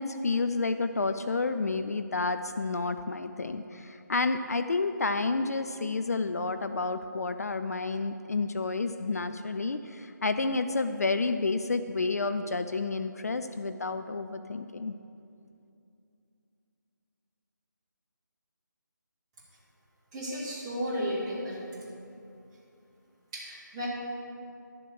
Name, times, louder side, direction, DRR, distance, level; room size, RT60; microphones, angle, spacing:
voice 1, 0.0-14.9, left 3 dB, 50° left, 9 dB, 0.4 m, -30 dB
voice 2, 20.1-21.6 23.3-23.9, equal, 20° right, -8 dB, 2.2 m, -33 dB
11.5 x 7.0 x 4.7 m, 2.6 s
figure-of-eight pair, 155°, 11 cm